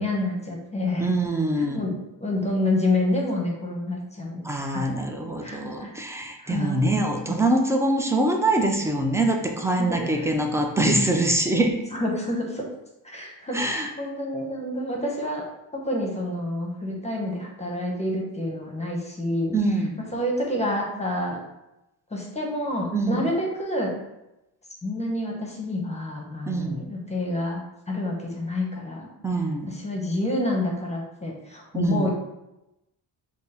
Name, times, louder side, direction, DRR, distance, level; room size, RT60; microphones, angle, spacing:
voice 1, 0.0-1.1 1.6-1.9 2.2-4.4 4.7-4.8 5.4-5.9 6.4-6.9 9.8-10.3 11.9-12.7 13.0-15.4 15.7-19.5 20.1-21.4 22.1-23.9 24.8-27.6 27.9-29.1 29.7-32.1, left 1 dB, 15° left, -1 dB, 0.7 m, -28 dB
voice 2, 1.0-1.8 4.4-11.7 13.5-13.9 19.5-20.0 22.9-23.2 26.5-26.8 29.2-29.7 31.7-32.1, right 2 dB, 5° right, 3 dB, 0.3 m, -24 dB
3.7 x 2.0 x 4.0 m, 0.93 s
cardioid pair, 105°, 43 cm